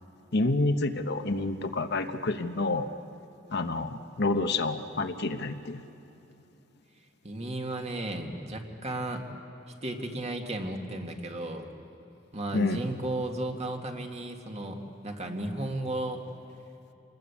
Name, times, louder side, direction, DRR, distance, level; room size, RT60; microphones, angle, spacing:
voice 1, 0.3-2.9 3.5-5.8 12.5-12.8, left 2 dB, 60° left, 7 dB, 1.1 m, -28 dB
voice 2, 7.2-9.3 9.8-11.7 12.3-16.2, right 1 dB, 35° right, 3 dB, 1.9 m, -34 dB
27.0 x 20.0 x 8.5 m, 2.9 s
head